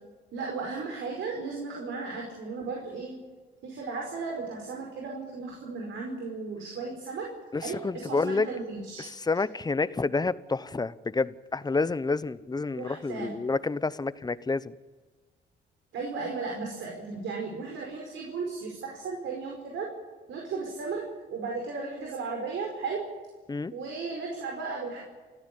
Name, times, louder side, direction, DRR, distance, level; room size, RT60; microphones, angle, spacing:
voice 1, 0.3-3.2 3.6-7.3 7.5-9.1 12.8-13.3 15.9-19.9 20.3-23.0 23.7-25.0, right 4 dB, 75° right, 0 dB, 5.2 m, -35 dB
voice 2, 7.5-8.5 9.1-14.7 23.5-23.7, left 3 dB, 20° left, 16 dB, 0.9 m, -29 dB
29.0 x 14.5 x 8.6 m, 1.4 s
cardioid pair, 90°, 20 cm